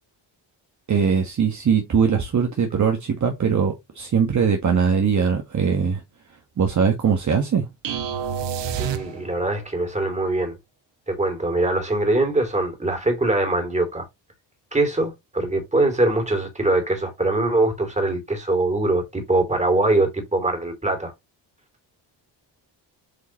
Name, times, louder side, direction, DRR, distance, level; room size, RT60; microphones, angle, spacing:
voice 1, 0.9-6.0 6.6-7.7, right 6 dB, 40° right, 1.4 m, -21 dB
sound 1, 7.8-9.6, right 8 dB, 75° right, 1.2 m, -28 dB
voice 2, 8.8-10.5 11.1-14.1 14.7-21.1, right 2 dB, 15° right, 2.8 m, -22 dB
8.0 x 4.7 x 2.9 m
cardioid pair, 120°, 44 cm